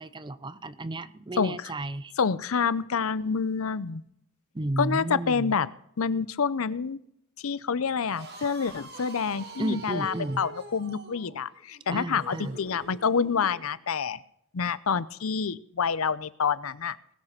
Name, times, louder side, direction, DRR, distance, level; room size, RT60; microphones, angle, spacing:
voice 1, 0.0-2.1 4.5-5.5 9.6-10.5 11.9-12.6, right 1 dB, 20° right, 15 dB, 0.6 m, -33 dB
voice 2, 1.4-1.7 2.2-4.0 4.8-5.7 6.0-7.0 7.4-14.2 14.5-17.0, left 6 dB, 75° left, 17 dB, 0.6 m, -27 dB
sound 1, 8.0-13.6, right 3 dB, 50° right, 2.6 m, -45 dB
20.0 x 6.7 x 5.9 m, 0.73 s
head